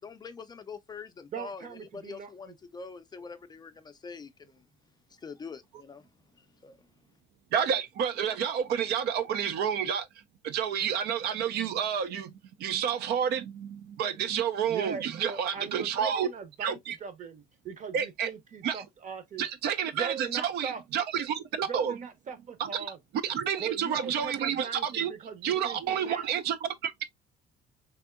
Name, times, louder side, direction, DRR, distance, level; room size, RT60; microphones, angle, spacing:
voice 1, 0.0-4.6 5.1-6.0 6.4-6.8, left 5 dB, 25° left, 0.4 m, -44 dB
voice 2, 1.3-2.5 14.7-19.5 19.9-20.8 21.7-23.0 23.6-26.3, right 6 dB, 45° right, 0.9 m, -39 dB
voice 3, 7.5-10.1 10.4-12.3 12.6-16.3 16.6-17.0 17.9-18.3 18.6-18.8 19.4-21.9 22.6-22.9 23.2-25.1 25.4-26.7, right 8 dB, 75° right, 0.5 m, -29 dB
3.5 x 2.6 x 2.4 m
cardioid pair, 110°, 17 cm